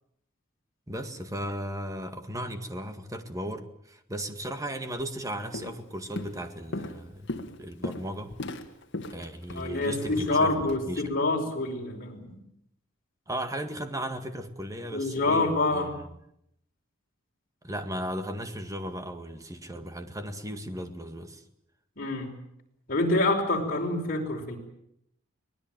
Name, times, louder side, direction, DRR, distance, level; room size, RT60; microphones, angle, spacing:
voice 1, 0.9-7.3 7.6-8.3 9.1-10.5 10.9-11.1 13.3-16.1 17.6-21.4, equal, 15° right, 8 dB, 1.9 m, -36 dB
Walk footsteps, 5.0-5.2 5.5-5.9 6.2-10.8, left 2 dB, 60° left, 1.8 m, -38 dB
voice 2, 9.5-12.4 14.9-15.9 22.0-22.3 22.9-24.6, left 2 dB, 45° left, 1 dB, 5.3 m, -27 dB
24.5 x 19.0 x 9.2 m, 0.76 s
head